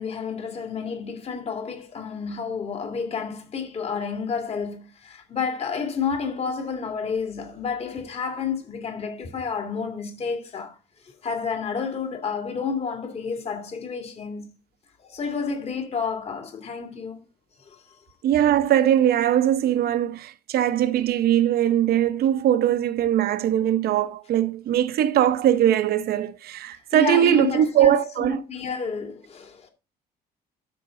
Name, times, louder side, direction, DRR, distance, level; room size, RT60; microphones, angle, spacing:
voice 1, 0.0-10.8 11.0-14.5 15.0-17.3 17.6-18.0 26.9-29.7, left 5 dB, 40° left, 2.4 m, -30 dB
voice 2, 18.2-28.4, right 11 dB, 65° right, 0.9 m, -21 dB
12.5 x 5.2 x 3.8 m
cardioid pair, 110°, 17 cm